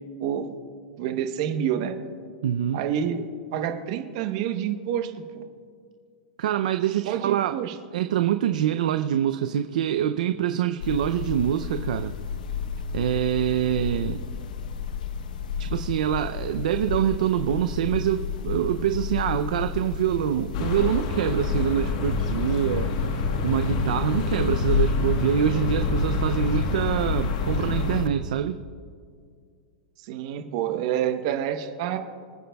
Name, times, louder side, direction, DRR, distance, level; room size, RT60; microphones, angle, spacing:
voice 1, 0.2-0.5 1.0-2.0 2.7-3.2 3.5-5.5 7.1-7.7 30.0-32.0, right 9 dB, 40° right, 6 dB, 0.9 m, -28 dB
voice 2, 2.4-2.8 6.4-7.6 7.9-12.1 12.9-14.2 15.6-28.6, right 10 dB, 65° right, 8 dB, 0.5 m, -25 dB
sound 1, 10.8-28.1, left 7 dB, 70° left, 0.8 m, -32 dB
sound 2, 20.5-28.0, left 4 dB, 45° left, 1.2 m, -27 dB
26.0 x 9.3 x 2.3 m, 2.2 s
supercardioid pair, 175°, 5 cm